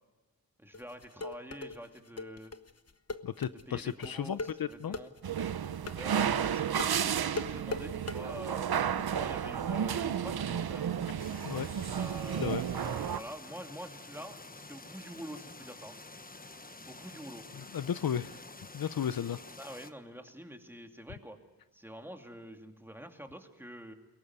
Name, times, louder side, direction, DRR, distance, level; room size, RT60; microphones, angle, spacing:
voice 1, 0.6-2.5 3.7-5.1 5.9-10.9 11.9-14.4 14.7-16.0 16.9-17.4 19.6-21.4 21.7-23.9, equal, 5° right, 4 dB, 2.5 m, -46 dB
sound 1, 0.7-8.2, left 3 dB, 40° left, 1.1 m, -40 dB
voice 2, 3.2-5.0 11.4-11.7 12.4-12.6 17.6-18.4 18.7-19.4, left 8 dB, 70° left, 14 dB, 0.7 m, -34 dB
sound 2, 5.2-13.2, right 8 dB, 80° right, 0.8 m, -32 dB
sound 3, 11.2-19.9, left 2 dB, 25° left, 1.2 m, -49 dB
22.5 x 17.5 x 9.5 m, 1.2 s
cardioid pair, 55°, 37 cm